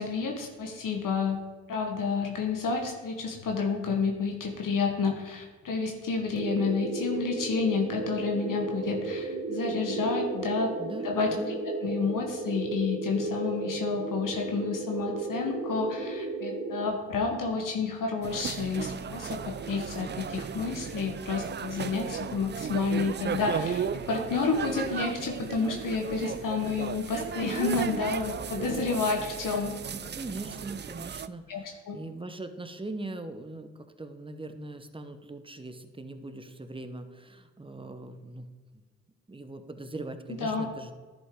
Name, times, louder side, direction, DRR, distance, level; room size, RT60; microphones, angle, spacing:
voice 1, 0.0-1.4 1.7-10.8 11.0-11.4 11.6-29.8 31.5-32.0 40.3-40.7, left 4 dB, 60° left, 2 dB, 1.3 m, -30 dB
sound 1, 6.3-16.9, right 3 dB, 55° right, 1.7 m, -34 dB
voice 2, 10.8-11.6 29.9-38.5 39.3-40.9, right 2 dB, 15° right, 8 dB, 0.9 m, -41 dB
sound 2, 18.2-31.3, right 7 dB, 30° right, 0.4 m, -35 dB
11.0 x 5.3 x 3.7 m, 1.4 s
hypercardioid pair, 45°, 35 cm